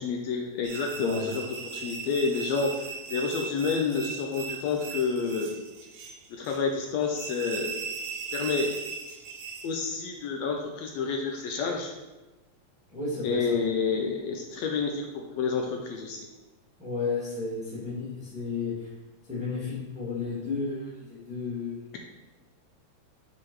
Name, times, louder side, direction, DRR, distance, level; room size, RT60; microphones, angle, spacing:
voice 1, 0.0-5.5 6.3-7.8 8.3-8.7 9.6-11.9 13.2-16.3, left 5 dB, 80° left, 2 dB, 1.7 m, -29 dB
Creaking Metal - High Pitch, 0.6-9.7, right 5 dB, 75° right, 1.2 m, -38 dB
voice 2, 0.9-1.3 12.9-13.5 16.8-18.9 19.3-21.7, left 4 dB, 5° right, -7 dB, 1.2 m, -32 dB
5.7 x 4.8 x 4.7 m, 1.1 s
omnidirectional pair, 3.4 m